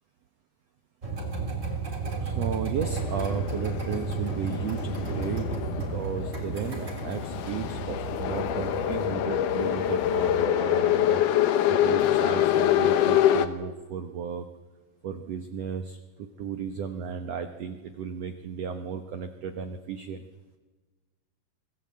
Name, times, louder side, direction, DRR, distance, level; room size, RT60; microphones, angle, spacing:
sound 1, 1.0-10.5, right 4 dB, 20° right, 3.2 m, -33 dB
voice 1, 2.2-14.5 15.0-16.0 16.4-20.3, right 7 dB, 70° right, 7 dB, 1.6 m, -35 dB
sound 2, 2.8-13.5, left 11 dB, 70° left, 2.4 m, -26 dB
24.5 x 17.5 x 8.5 m, 1.3 s
omnidirectional pair, 4.2 m